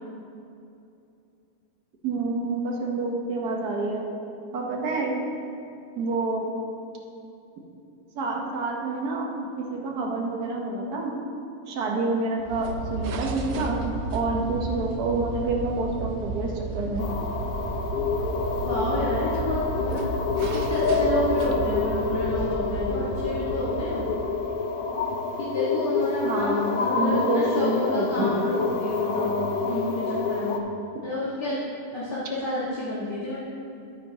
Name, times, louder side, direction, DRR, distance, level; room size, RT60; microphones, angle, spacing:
voice 1, 2.0-4.1 4.5-5.1 5.9-6.5 8.1-9.3 9.6-11.1 11.7-17.0 17.9-18.1 26.2-28.4, right 2 dB, 85° right, 0 dB, 1.6 m, -28 dB
sound 1, 12.4-24.6, right 3 dB, 60° right, 0.8 m, -33 dB
sound 2, 17.0-30.6, left 4 dB, 60° left, 0.5 m, -27 dB
voice 2, 18.6-20.0 20.5-24.0 25.4-30.6 31.0-31.6 31.9-33.4, left 1 dB, 40° left, -9 dB, 1.7 m, -30 dB
12.0 x 9.0 x 2.8 m, 2.7 s
omnidirectional pair, 1.6 m